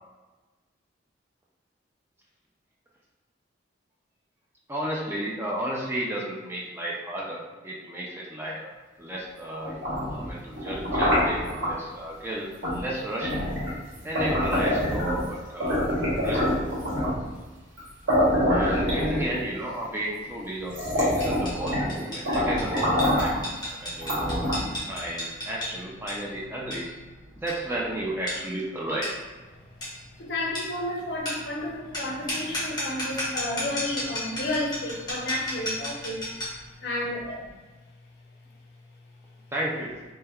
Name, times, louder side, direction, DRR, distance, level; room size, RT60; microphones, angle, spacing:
voice 1, 4.7-8.7 9.0-13.5 14.0-16.6 18.5-23.5 23.8-26.9 27.4-29.1 39.5-39.9, right 1 dB, 10° right, -4 dB, 0.3 m, -33 dB
sound 1, 9.6-11.7 12.6-12.8 13.2-15.3 15.6-17.2 17.8-17.9 18.1-19.6 20.2-20.3 20.7-21.9 22.3-23.4 24.0-24.8, equal, 85° right, 1.0 m, -25 dB
sound 2, 21.2-36.7, left 1 dB, 20° left, 0.8 m, -35 dB
voice 2, 30.2-36.2 36.8-37.4, left 1 dB, 60° left, -1 dB, 0.5 m, -31 dB
3.3 x 2.1 x 2.2 m, 1.3 s
head